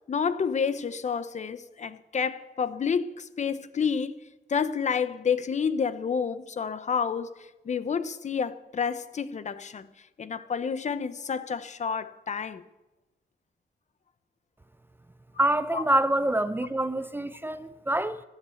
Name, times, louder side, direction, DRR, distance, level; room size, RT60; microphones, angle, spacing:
voice 1, 0.1-4.2 4.5-9.9 10.2-12.6 15.7-15.8, left 6 dB, 40° left, 0.8 m, -29 dB
voice 2, 15.4-18.2, right 1 dB, 10° right, 0.5 m, -26 dB
12.5 x 11.5 x 9.1 m
wide cardioid pair, 135°, 18 cm